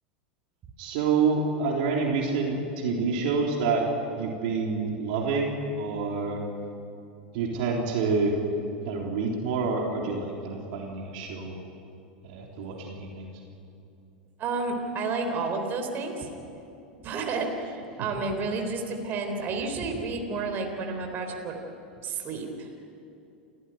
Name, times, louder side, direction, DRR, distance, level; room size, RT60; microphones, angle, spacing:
voice 1, 0.8-3.9 4.2-6.4 7.3-8.4 8.9-11.6 12.2-13.3, right 4 dB, 60° right, 0 dB, 3.7 m, -27 dB
voice 2, 14.4-16.3 17.0-21.6 22.0-22.7, right 3 dB, 40° right, 3 dB, 3.9 m, -31 dB
29.0 x 15.0 x 9.3 m, 2.7 s
hypercardioid pair, 90°, 5 cm